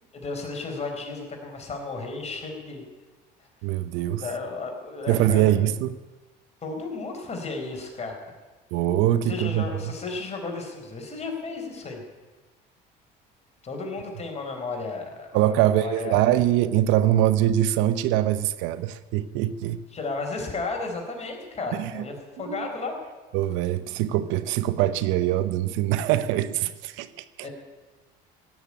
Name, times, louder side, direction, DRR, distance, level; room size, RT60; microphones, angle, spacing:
voice 1, 0.1-2.8 3.4-3.5 4.2-5.4 6.6-8.4 9.2-12.0 13.6-16.2 19.9-22.9 27.4-27.5, left 3 dB, 35° left, 2 dB, 4.4 m, -33 dB
voice 2, 3.6-4.2 5.1-6.0 8.7-9.9 15.3-19.8 21.7-22.0 22.5-22.7 23.3-27.5, right 12 dB, 80° right, 14 dB, 0.7 m, -23 dB
17.0 x 7.5 x 9.9 m, 1.2 s
supercardioid pair, 90°, 20 cm